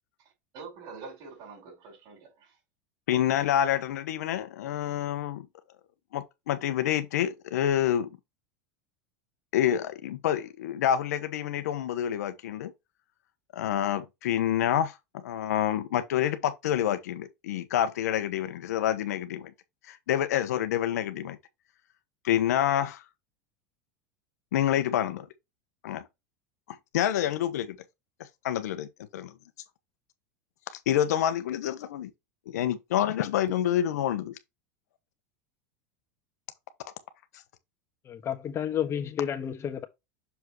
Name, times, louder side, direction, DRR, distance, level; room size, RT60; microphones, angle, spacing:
voice 1, 0.5-2.5, right 5 dB, 50° right, 4.8 m, -45 dB
voice 2, 3.1-5.5 6.1-8.1 9.5-12.7 13.5-19.5 19.9-21.4 22.2-23.0 24.5-25.3 25.8-26.0 26.9-27.7 28.4-28.9 29.1-29.3 30.9-32.1 32.5-34.3, left 11 dB, 85° left, 1.0 m, -27 dB
voice 3, 38.0-39.8, left 9 dB, 30° left, 1.4 m, -31 dB
6.8 x 4.6 x 3.0 m
supercardioid pair, 120°, 9 cm